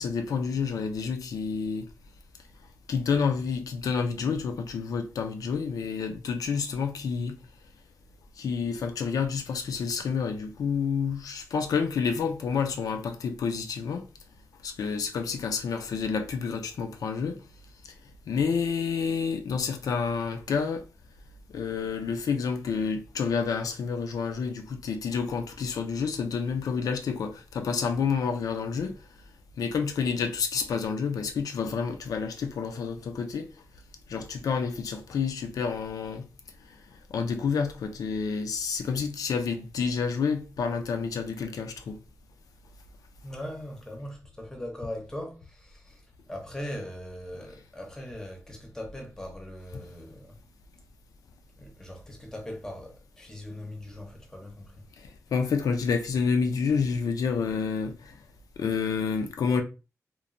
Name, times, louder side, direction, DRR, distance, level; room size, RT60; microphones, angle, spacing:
voice 1, 0.0-1.9 2.9-7.4 8.4-14.1 14.6-17.4 17.8-17.9 18.3-20.9 21.5-29.0 29.6-33.5 34.1-36.3 37.1-42.0 49.7-49.8 55.0-58.1 58.6-59.6, left 5 dB, 90° left, 0.4 m, -29 dB
voice 2, 43.2-50.4 51.6-54.9, left 1 dB, 10° left, 0.6 m, -40 dB
3.0 x 2.1 x 2.5 m
wide cardioid pair, 175°, 6 cm